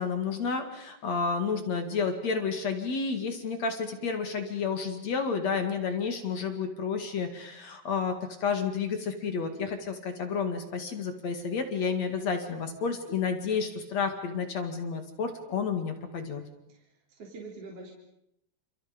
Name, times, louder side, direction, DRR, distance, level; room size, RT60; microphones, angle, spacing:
voice 1, 0.0-8.1 8.4-16.4, left 5 dB, 45° left, 6 dB, 2.9 m, -31 dB
voice 2, 16.7-17.9, right 3 dB, 35° right, -1 dB, 4.3 m, -45 dB
29.5 x 29.0 x 5.3 m, 0.78 s
omnidirectional pair, 4.8 m